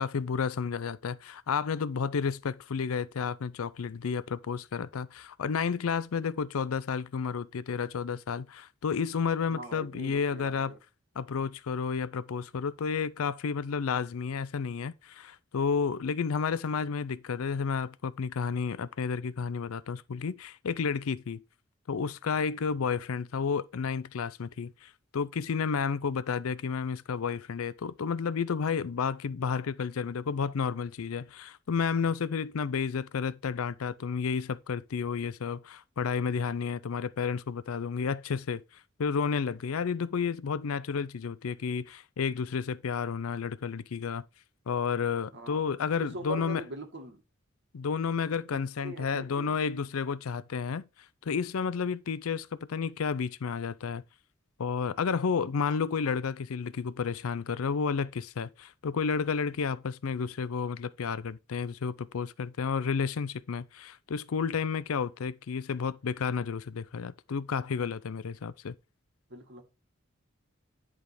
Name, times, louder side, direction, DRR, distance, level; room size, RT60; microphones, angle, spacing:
voice 1, 0.0-10.7 11.2-21.4 21.9-38.6 39.0-44.2 44.7-46.6 47.7-50.8 51.2-54.0 54.6-68.7, left 6 dB, 90° left, 0.5 m, -31 dB
voice 2, 9.5-10.8 45.3-45.6 46.0-47.2 48.5-49.6 69.3-69.6, right 2 dB, 55° right, 2.0 m, -42 dB
10.5 x 3.7 x 4.9 m
head